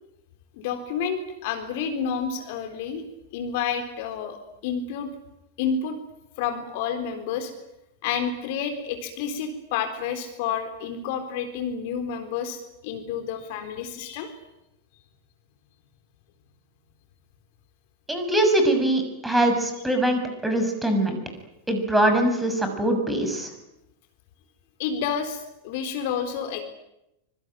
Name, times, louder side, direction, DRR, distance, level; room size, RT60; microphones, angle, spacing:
voice 1, 0.6-3.1 3.3-4.4 4.6-5.1 5.6-6.0 6.4-7.5 8.0-14.3 24.8-26.6, left 7 dB, 50° left, 7 dB, 3.9 m, -29 dB
voice 2, 18.1-21.2 21.7-23.5, right 1 dB, 5° right, 6 dB, 6.8 m, -22 dB
25.5 x 25.0 x 9.3 m, 0.88 s
figure-of-eight pair, 90°, 0 cm